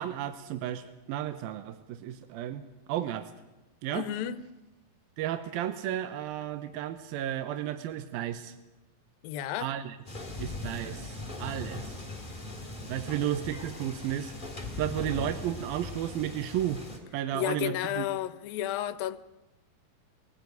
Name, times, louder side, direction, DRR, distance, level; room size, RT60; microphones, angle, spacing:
voice 1, 0.0-2.6 2.9-3.3 3.8-4.1 5.2-8.6 9.6-10.0 10.4-12.0 12.9-14.3 14.8-16.8 17.1-18.0, right 11 dB, 85° right, 2.8 m, -33 dB
voice 2, 3.9-4.4 9.2-9.7 17.3-19.2, left 12 dB, 80° left, 2.6 m, -32 dB
sound 1, 10.1-17.0, left 2 dB, 15° left, 2.9 m, -40 dB
22.5 x 16.5 x 9.4 m
omnidirectional pair, 4.2 m